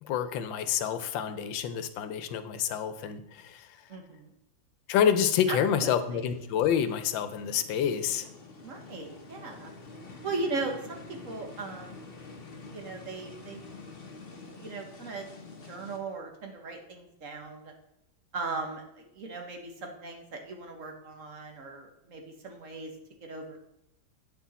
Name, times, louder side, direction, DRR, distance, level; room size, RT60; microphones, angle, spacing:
voice 1, 0.0-3.8 4.9-8.3, left 8 dB, 85° left, 11 dB, 1.4 m, -28 dB
voice 2, 3.9-4.3 5.5-6.2 8.6-9.7 10.2-12.3 12.6-13.6 14.6-15.3 15.6-17.7 18.3-22.9 23.2-23.6, right 3 dB, 50° right, 3 dB, 1.3 m, -38 dB
sound 1, 5.9-16.0, left 3 dB, 40° left, 1.1 m, -47 dB
8.5 x 6.1 x 4.1 m, 0.82 s
omnidirectional pair, 2.0 m